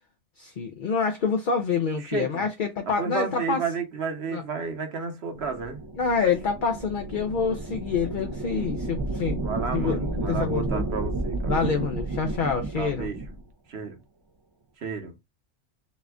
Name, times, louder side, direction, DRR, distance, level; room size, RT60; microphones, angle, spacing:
voice 1, 0.4-3.6 4.3-4.4 5.9-9.4 9.7-10.9 11.5-13.1, left 5 dB, 50° left, 0.7 m, -27 dB
voice 2, 2.0-2.4 3.0-5.8 9.4-11.5 12.7-13.3 13.7-14.0 14.8-15.1, right 5 dB, 60° right, 1.3 m, -32 dB
sound 1, 5.4-13.4, right 2 dB, 35° right, 0.3 m, -31 dB
4.1 x 2.5 x 3.4 m
omnidirectional pair, 1.2 m